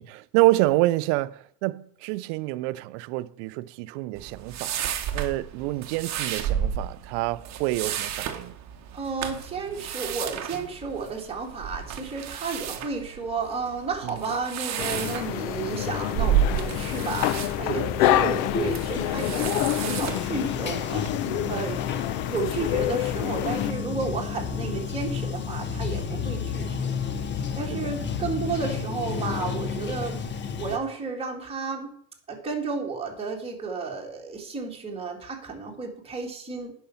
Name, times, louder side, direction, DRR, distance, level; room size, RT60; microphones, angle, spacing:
voice 1, 0.0-4.8 5.1-8.6 14.0-14.2 17.8-17.9 21.2-21.7 27.7-27.8, right 19 dB, 55° right, 0.5 m, -27 dB
sound 1, 4.2-21.1, right 9 dB, 35° right, 1.1 m, -32 dB
voice 2, 8.9-21.0 21.5-21.8 22.3-26.9 27.6-30.2 30.6-31.9 32.3-36.7, right 4 dB, 10° right, 2.1 m, -32 dB
sound 2, 14.8-23.7, left 13 dB, 55° left, 0.6 m, -27 dB
Bathtub (filling or washing), 16.7-30.8, left 6 dB, 25° left, 0.8 m, -32 dB
10.0 x 5.4 x 5.8 m
supercardioid pair, 105°, 47 cm